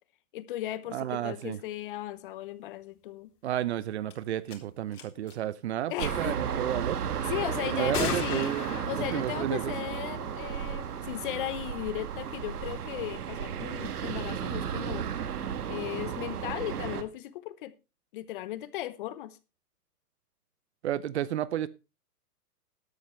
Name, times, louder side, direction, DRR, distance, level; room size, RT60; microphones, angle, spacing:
voice 1, 0.3-3.3 5.9-6.4 7.3-8.5 8.9-15.1 15.7-17.7 18.1-19.4, left 14 dB, 35° left, 0.9 m, -36 dB
voice 2, 0.9-1.6 3.4-7.0 7.7-9.7 20.8-21.7, right 12 dB, 45° right, 0.7 m, -32 dB
sound 1, 4.1-4.2 4.5-4.6 4.9-5.3 7.9-8.8, left 5 dB, 75° left, 4.3 m, -33 dB
sound 2, 6.0-17.0, right 8 dB, 70° right, 1.8 m, -34 dB
13.0 x 11.5 x 3.2 m
hypercardioid pair, 145°, 47 cm